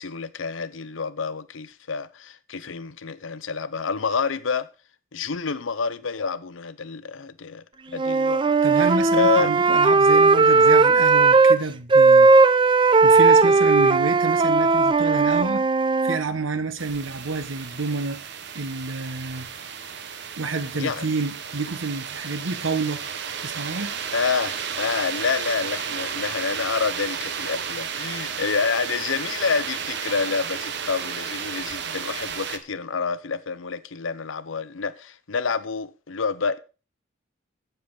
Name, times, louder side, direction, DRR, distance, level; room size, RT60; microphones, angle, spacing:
voice 1, 0.0-4.7 5.1-8.4 9.1-9.5 20.7-21.1 24.1-36.6, left 5 dB, 85° left, 0.8 m, -28 dB
Wind instrument woodwind instrument, 8.0-11.6 11.9-16.2, right 4 dB, 25° right, 0.5 m, -17 dB
voice 2, 8.6-12.3 13.0-15.7 16.0-18.2 18.5-19.5 20.4-23.0 23.4-23.9, right 3 dB, 85° right, 1.2 m, -29 dB
sound 1, 16.8-32.6, right 7 dB, 60° right, 1.0 m, -33 dB
15.5 x 6.8 x 4.0 m
head